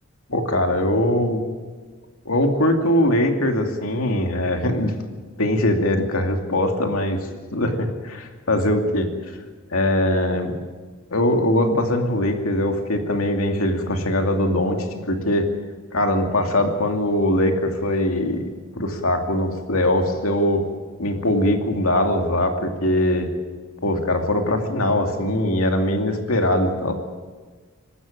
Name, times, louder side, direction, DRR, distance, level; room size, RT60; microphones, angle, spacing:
voice 1, 0.3-1.4 2.2-4.9 5.4-9.1 9.7-10.6 11.1-15.5 15.9-18.5 18.7-20.6 21.0-23.3 23.8-26.9, left 1 dB, 90° left, 3 dB, 2.6 m, -21 dB
23.5 x 13.0 x 9.0 m, 1.4 s
head